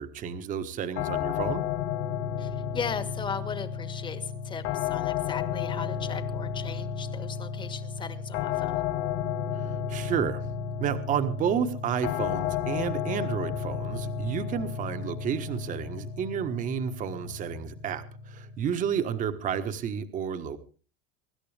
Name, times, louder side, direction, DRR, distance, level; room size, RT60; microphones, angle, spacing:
voice 1, 0.0-1.6 9.6-10.4 10.8-20.6, right 8 dB, 25° right, 10 dB, 1.4 m, -31 dB
sound 1, 1.0-19.9, left 8 dB, 50° left, 2.4 m, -33 dB
voice 2, 2.4-8.8, left 6 dB, 15° left, 12 dB, 1.5 m, -37 dB
24.0 x 13.0 x 3.4 m, 0.38 s
cardioid pair, 180°, 30 cm